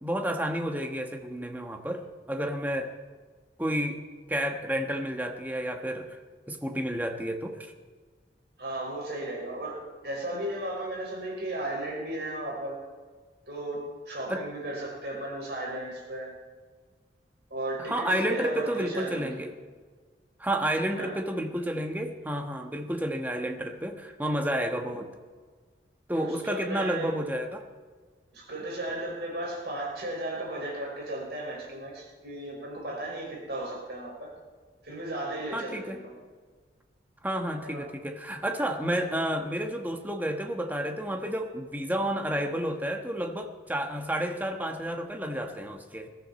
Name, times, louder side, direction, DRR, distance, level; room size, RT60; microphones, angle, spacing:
voice 1, 0.0-2.9 3.6-4.0 4.3-6.2 6.5-7.7 14.3-14.4 17.8-19.5 20.4-25.1 26.1-27.6 35.5-36.0 37.2-46.1, right 1 dB, 10° right, 4 dB, 1.2 m, -31 dB
voice 2, 8.6-12.8 13.5-16.3 17.5-19.3 20.9-21.1 26.1-27.1 28.3-34.3 34.8-36.2 37.6-37.8, right 1 dB, 60° right, -1 dB, 5.4 m, -35 dB
21.0 x 14.0 x 4.3 m, 1.5 s
head